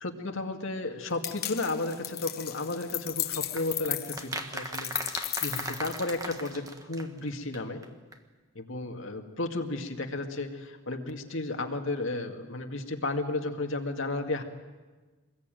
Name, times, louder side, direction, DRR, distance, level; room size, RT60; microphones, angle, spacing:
voice 1, 0.0-7.8 8.6-14.4, left 2 dB, 60° left, 4 dB, 2.2 m, -33 dB
sound 1, 1.2-6.5, left 13 dB, 45° left, 1.1 m, -35 dB
sound 2, 3.6-7.6 7.8-7.9 8.1-8.2, right 2 dB, 15° right, 1.5 m, -38 dB
24.5 x 21.0 x 9.2 m, 1.3 s
head